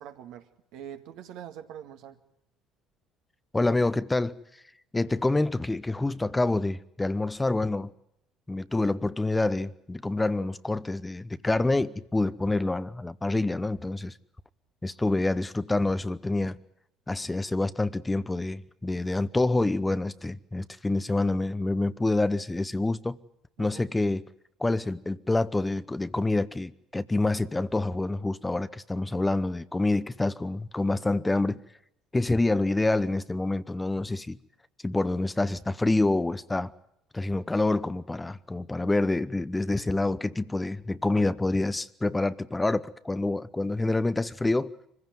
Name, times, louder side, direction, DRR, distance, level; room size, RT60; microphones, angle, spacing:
voice 1, 0.0-2.2 23.6-23.9, right 10 dB, 70° right, 2.0 m, -44 dB
voice 2, 3.5-4.4 4.9-7.9 8.5-14.1 14.8-16.6 17.1-23.2 23.6-24.2 24.6-31.6 32.1-34.4 34.8-36.7 37.1-44.7, left 2 dB, 15° left, 0.9 m, -27 dB
24.5 x 15.5 x 9.3 m
hypercardioid pair, 65°, 0 cm